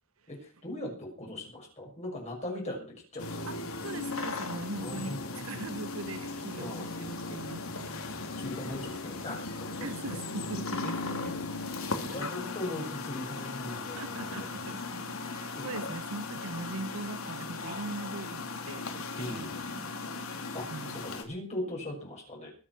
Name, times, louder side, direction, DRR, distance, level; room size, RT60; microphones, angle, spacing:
voice 1, 0.3-3.4 4.8-5.6 6.6-6.9 8.4-10.2 11.8-14.6 15.6-15.7 19.2-19.7 20.5-22.5, left 1 dB, 35° left, 6.4 m, -40 dB
sound 1, 3.2-21.2, left 3 dB, 85° left, 2.9 m, -37 dB
voice 2, 3.8-7.9 8.3-8.4 9.8-11.4 12.1-12.3 14.0-19.9 20.2-21.0, right 2 dB, 75° right, 1.0 m, -41 dB
21.5 x 8.0 x 6.0 m
head